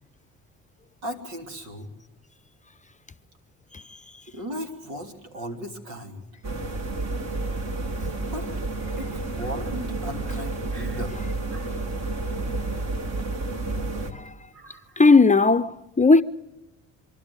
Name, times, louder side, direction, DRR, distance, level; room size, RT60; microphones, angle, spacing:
voice 1, 1.0-1.9 4.3-6.2 8.2-8.6 9.0-11.2 11.5-11.7 14.5-15.0, equal, 80° right, 3.3 m, -36 dB
sound 1, 6.4-14.1, right 2 dB, 45° right, 2.8 m, -30 dB
voice 2, 15.0-16.2, left 3 dB, 20° left, 0.7 m, -16 dB
25.5 x 12.0 x 9.9 m
hypercardioid pair, 55°, 37 cm